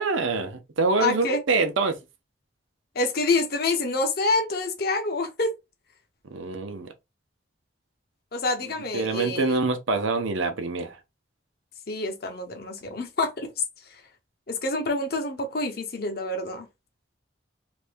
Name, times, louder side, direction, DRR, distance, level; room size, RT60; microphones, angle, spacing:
voice 1, 0.0-1.9 6.3-6.9 8.9-11.0, right 3 dB, 85° right, 0.7 m, -25 dB
voice 2, 1.0-1.4 2.9-5.5 8.3-9.5 11.9-13.5 14.5-16.6, left 2 dB, 50° left, 0.7 m, -27 dB
2.6 x 2.6 x 3.4 m
head